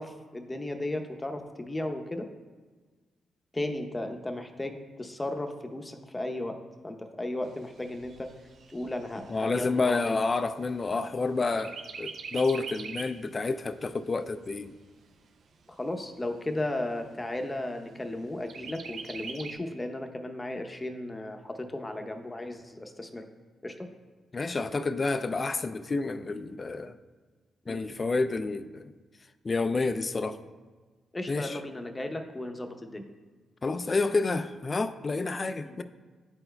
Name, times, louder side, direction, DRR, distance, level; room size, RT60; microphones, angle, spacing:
voice 1, 0.0-2.3 3.5-6.6 6.8-8.3 8.7-10.2 15.7-23.2 23.6-23.7 27.7-27.8 31.1-33.0 35.6-35.7, left 1 dB, 20° left, 0.7 m, -35 dB
Chirp tweet, 7.4-11.2 11.6-13.2 13.7-13.8 14.1-15.1 15.7-15.8 16.2-16.3 16.7-17.2 18.5-19.6, right 5 dB, 70° right, 0.4 m, -43 dB
voice 2, 9.3-14.7 24.3-27.0 27.7-28.9 29.4-30.4 31.3-31.6 33.6-35.8, left 3 dB, 40° left, 0.3 m, -29 dB
10.5 x 4.4 x 2.2 m
supercardioid pair, 60°, 0 cm